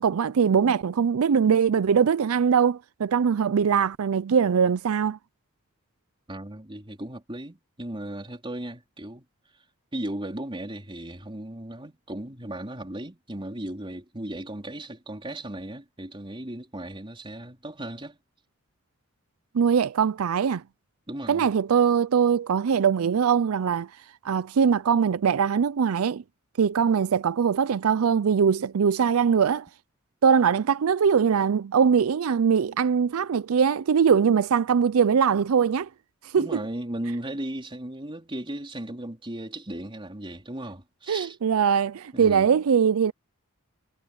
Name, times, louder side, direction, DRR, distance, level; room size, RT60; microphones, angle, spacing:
voice 1, 0.0-5.2 19.5-20.6 21.3-23.9 24.2-26.2 26.6-29.7 30.2-35.9 36.3-36.6 41.1-43.1, right 7 dB, 90° right, 0.4 m, -22 dB
voice 2, 6.3-9.2 9.9-18.2 21.1-21.5 36.4-41.4 42.1-42.5, right 1 dB, 25° right, 3.8 m, -36 dB
head